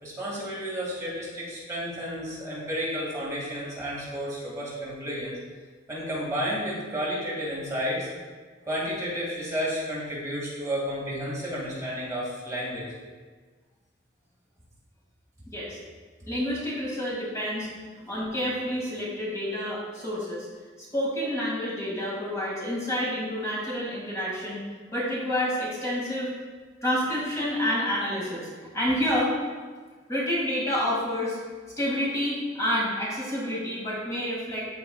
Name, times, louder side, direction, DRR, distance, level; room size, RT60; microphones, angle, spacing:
voice 1, 0.0-5.4 5.9-8.1 8.7-12.8, equal, 20° right, -6 dB, 1.9 m, -31 dB
voice 2, 15.5-15.8 16.3-20.5 20.8-24.7 24.9-26.3 26.8-29.3 30.1-31.4 31.8-34.6, equal, 20° left, -6 dB, 2.0 m, -29 dB
13.5 x 4.7 x 2.3 m, 1.5 s
head